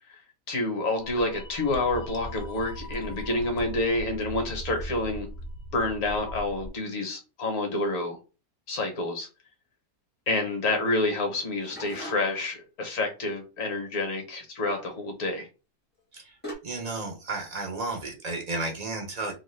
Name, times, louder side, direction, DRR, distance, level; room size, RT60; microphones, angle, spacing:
voice 1, 0.5-5.3 5.7-8.2 8.7-9.3 10.3-15.5, left 2 dB, 60° left, 1.3 m, -28 dB
sound 1, 1.0-6.7, equal, 90° left, 1.2 m, -39 dB
sound 2, 11.1-12.5 14.7-15.0 16.0-16.1 16.4-16.5, equal, 15° left, 0.4 m, -41 dB
voice 2, 16.6-19.3, right 3 dB, 85° right, 0.3 m, -33 dB
2.9 x 2.2 x 3.2 m
omnidirectional pair, 1.6 m